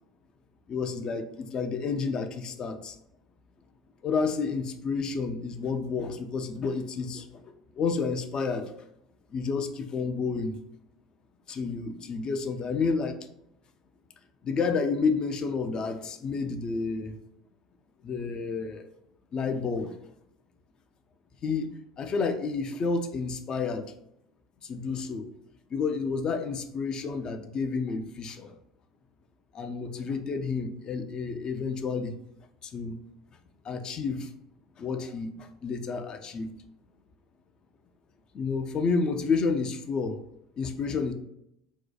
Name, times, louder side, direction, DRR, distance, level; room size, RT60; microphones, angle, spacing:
voice 1, 0.7-3.0 4.0-8.7 9.3-10.6 11.5-13.2 14.4-17.1 18.0-18.9 19.3-19.9 21.4-23.8 24.6-25.2 25.7-28.5 29.5-32.1 32.6-33.0 33.6-34.3 34.8-36.5 38.3-40.2 40.6-41.1, left 4 dB, 35° left, 8 dB, 0.3 m, -30 dB
2.7 x 2.1 x 2.3 m, 0.79 s
hypercardioid pair, 75°, 2 cm